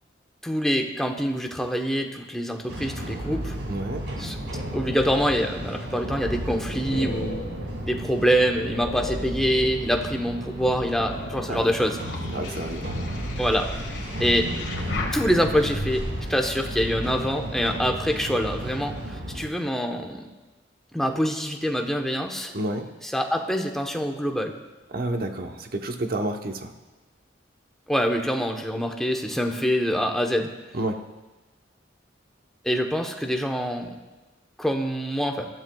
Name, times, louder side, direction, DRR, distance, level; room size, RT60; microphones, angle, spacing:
voice 1, 0.4-3.5 4.2-4.4 4.7-7.4 7.9-12.0 13.4-13.7 14.2-14.5 15.1-16.0 16.3-20.3 20.9-22.5 23.0-24.5 27.9-30.5 32.6-33.9 34.6-35.5, equal, ahead, 3 dB, 1.0 m, -25 dB
sound 1, 2.7-19.5, right 1 dB, 70° right, 2.3 m, -34 dB
voice 2, 3.7-4.0 11.5-11.7 12.3-12.9 22.5-22.9 24.9-26.7 30.7-31.0, right 1 dB, 55° right, 4 dB, 1.1 m, -29 dB
sound 2, 5.8-10.0 10.6-16.2, left 2 dB, 65° left, 2.0 m, -36 dB
22.0 x 12.5 x 2.4 m, 1.2 s
head